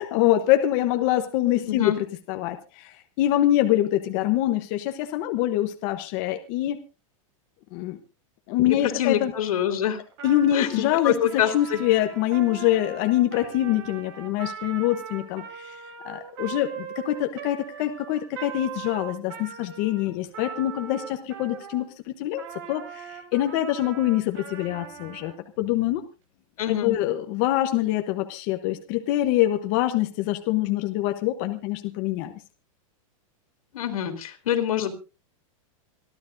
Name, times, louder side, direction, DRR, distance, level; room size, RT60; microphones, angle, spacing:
voice 1, 0.0-1.9 2.3-6.8 7.7-8.0 8.5-9.3 10.2-15.8 16.0-22.4 22.7-26.0 26.7-32.3, left 13 dB, 30° left, 6 dB, 0.9 m, -25 dB
voice 2, 1.7-2.0 8.8-10.0 10.5-11.8 26.6-26.9 33.7-34.9, left 10 dB, 85° left, 7 dB, 3.0 m, -25 dB
Trumpet, 10.1-21.9 22.4-25.4, right 8 dB, 45° right, 3.4 m, -40 dB
26.5 x 12.0 x 2.6 m, 0.31 s
supercardioid pair, 180°, 18 cm